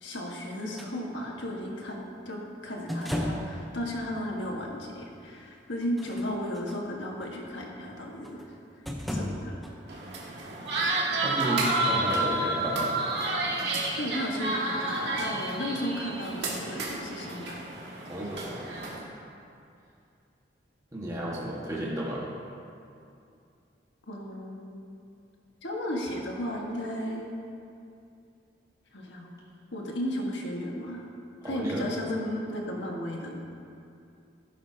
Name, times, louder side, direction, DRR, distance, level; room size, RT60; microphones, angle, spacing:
voice 1, 0.0-8.6 9.1-9.6 14.0-17.6 24.1-24.9 25.6-27.3 28.9-29.4 29.7-31.0 31.4-33.4, equal, 80° left, -1 dB, 1.6 m, -34 dB
sound 1, 0.8-0.9 2.9-3.6 4.4-4.5 5.8-6.8 8.2-8.5 8.9-9.7 10.7-10.8, left 1 dB, ahead, 0.8 m, -33 dB
sound 2, 9.9-19.0, right 2 dB, 65° right, 2.0 m, -30 dB
voice 2, 11.2-12.9 18.0-18.8 20.9-22.3 31.4-31.9, right 1 dB, 20° right, -6 dB, 1.6 m, -32 dB
16.5 x 9.4 x 2.8 m, 2.5 s
head